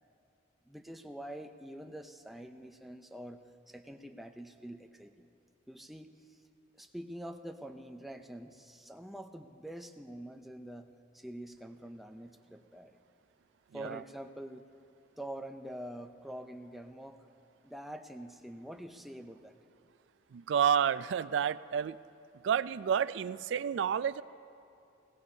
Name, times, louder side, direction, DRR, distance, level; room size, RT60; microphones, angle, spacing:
voice 1, 0.7-5.3 5.7-6.4 6.8-13.0 13.7-14.7 15.2-17.2 17.6-19.5, right 1 dB, ahead, 5 dB, 0.4 m, -46 dB
voice 2, 20.3-22.0 22.4-24.2, right 8 dB, 70° right, 16 dB, 0.3 m, -30 dB
21.0 x 17.0 x 2.7 m, 2.7 s
head